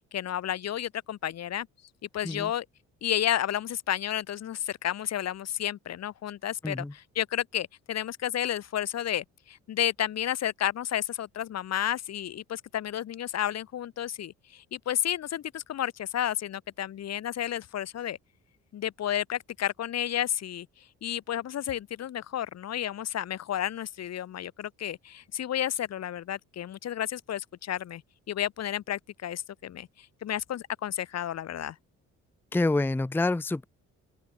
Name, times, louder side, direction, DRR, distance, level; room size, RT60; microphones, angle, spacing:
voice 1, 0.1-1.7 2.1-2.6 3.0-18.2 18.7-20.7 21.0-28.0 28.3-31.8, left 11 dB, 60° left, 1.2 m, -31 dB
voice 2, 32.5-33.6, left 2 dB, 5° left, 0.6 m, -27 dB
open air
cardioid pair, 90°, 30 cm